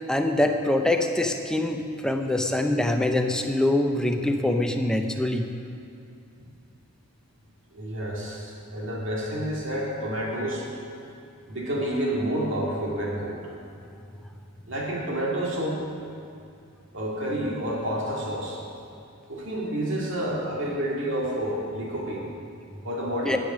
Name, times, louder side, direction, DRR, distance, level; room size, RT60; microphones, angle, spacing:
voice 1, 0.1-5.5 23.2-23.4, left 1 dB, 5° left, 4 dB, 0.6 m, -24 dB
voice 2, 7.7-10.7 11.5-13.4 14.7-15.8 16.9-18.6 19.3-22.3 22.8-23.4, right 1 dB, 65° right, -3 dB, 2.3 m, -29 dB
10.5 x 8.1 x 6.2 m, 2.6 s
head